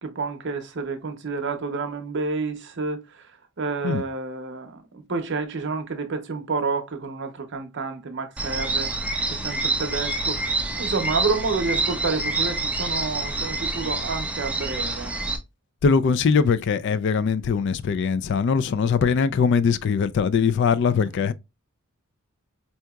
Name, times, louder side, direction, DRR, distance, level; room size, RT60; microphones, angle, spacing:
voice 1, 0.0-3.3 3.6-8.9 9.3-10.5 10.8-15.1, right 4 dB, 55° right, 0.7 m, -29 dB
sound 1, 8.4-15.4, right 2 dB, 5° right, 0.5 m, -27 dB
voice 2, 15.8-21.3, left 6 dB, 55° left, 0.3 m, -21 dB
4.5 x 2.8 x 2.2 m
head